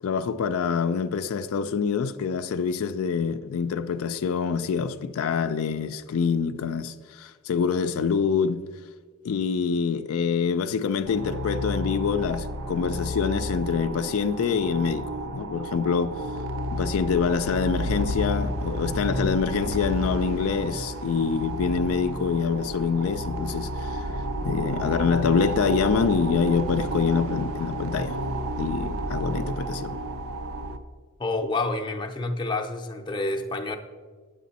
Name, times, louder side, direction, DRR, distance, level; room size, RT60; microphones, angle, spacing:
voice 1, 0.0-8.6 9.2-16.2 16.7-24.1 24.4-28.2 28.5-30.0, left 6 dB, 75° left, 0.4 m, -26 dB
sound 1, 11.0-30.8, right 1 dB, 75° right, 0.6 m, -31 dB
voice 2, 31.2-33.8, left 2 dB, 20° left, 0.5 m, -28 dB
9.3 x 7.4 x 4.1 m
head